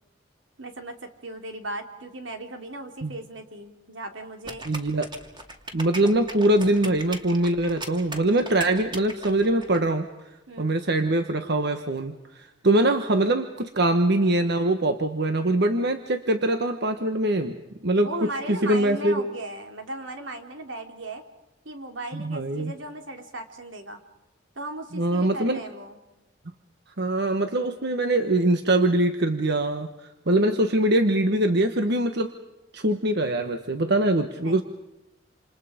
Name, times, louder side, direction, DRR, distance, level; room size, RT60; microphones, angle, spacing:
voice 1, 0.6-4.7 10.5-10.7 18.0-21.2 21.6-24.0 24.5-26.0 34.3-34.6, right 2 dB, 85° right, 5 dB, 3.2 m, -37 dB
sound 1, 4.5-9.8, right 2 dB, 25° right, 2.7 m, -38 dB
voice 2, 4.6-5.1 5.7-10.1 10.6-17.6 17.8-18.1 18.5-19.2 22.1-22.7 24.9-25.6 27.0-29.9 30.3-32.3 32.7-34.6, right 1 dB, 60° right, 7 dB, 1.3 m, -23 dB
28.0 x 28.0 x 5.2 m, 0.98 s
head